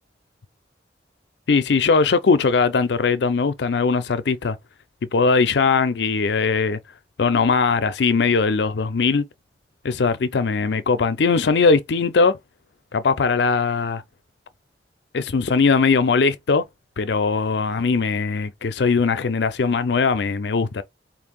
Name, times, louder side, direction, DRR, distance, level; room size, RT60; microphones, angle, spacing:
voice 1, 1.5-4.6 5.1-6.8 7.2-9.3 9.8-12.4 12.9-14.0 15.1-16.7 17.0-20.8, left 4 dB, 70° left, 0.5 m, -20 dB
4.3 x 2.6 x 3.5 m
head